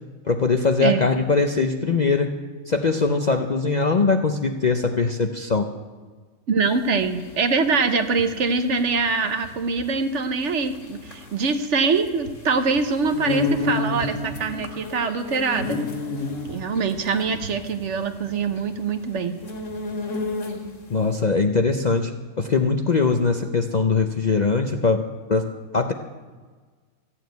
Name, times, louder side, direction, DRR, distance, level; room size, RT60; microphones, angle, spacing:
voice 1, 0.2-2.3 2.7-5.7 20.9-25.0 25.3-25.9, left 4 dB, 45° left, 5 dB, 0.6 m, -21 dB
voice 2, 6.5-15.8 16.5-19.4, right 4 dB, 60° right, 9 dB, 1.1 m, -24 dB
sound 1, 6.7-20.9, left 3 dB, 60° left, 2.2 m, -31 dB
14.0 x 7.2 x 9.3 m, 1.4 s
omnidirectional pair, 1.5 m